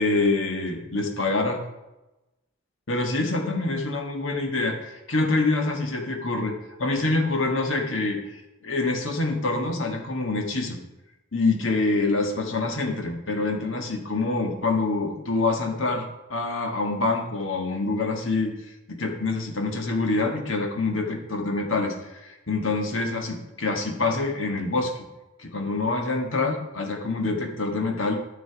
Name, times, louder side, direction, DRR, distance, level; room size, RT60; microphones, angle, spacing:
voice 1, 0.0-1.6 2.9-6.5 6.8-8.3 8.6-10.8 11.3-18.5 18.9-24.9 25.4-28.2, left 3 dB, 70° left, 3 dB, 1.7 m, -26 dB
13.0 x 6.1 x 4.7 m, 1.0 s
head